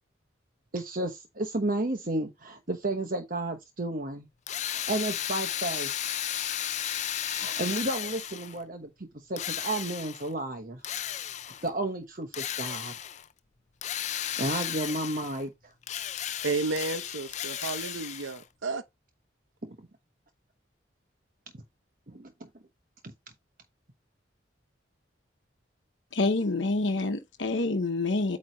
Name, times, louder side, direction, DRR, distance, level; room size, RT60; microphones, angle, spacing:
voice 1, 0.7-4.3 4.7-5.9 7.4-8.9 9.3-10.8 11.6-12.9 14.4-15.5 19.6-19.8 22.1-22.3 23.0-23.1, right 2 dB, 45° right, 1.0 m, -32 dB
Drill, 4.5-8.6 9.4-10.3 10.8-11.7 12.3-13.2 13.8-15.4 15.8-18.4, left 11 dB, 35° left, 0.4 m, -34 dB
voice 2, 16.4-18.8, right 3 dB, 90° right, 0.8 m, -32 dB
voice 3, 26.1-28.4, left 3 dB, 75° left, 1.0 m, -27 dB
8.7 x 3.1 x 5.0 m
head